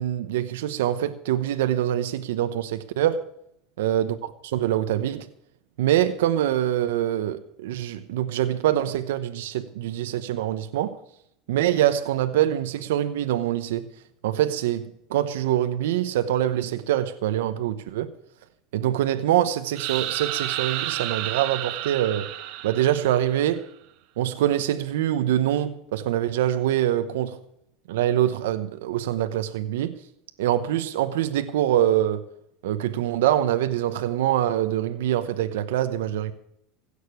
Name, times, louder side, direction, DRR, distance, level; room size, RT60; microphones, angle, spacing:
voice 1, 0.0-3.2 3.8-4.2 4.4-5.3 5.8-11.0 11.5-13.9 14.2-18.1 18.7-22.3 22.6-23.7 24.2-27.4 27.9-29.9 30.4-32.2 32.6-36.3, right 12 dB, 90° right, 0.9 m, -24 dB
sound 1, 19.8-23.6, right 14 dB, 65° right, 1.4 m, -31 dB
16.5 x 6.6 x 9.5 m
supercardioid pair, 115°, 0 cm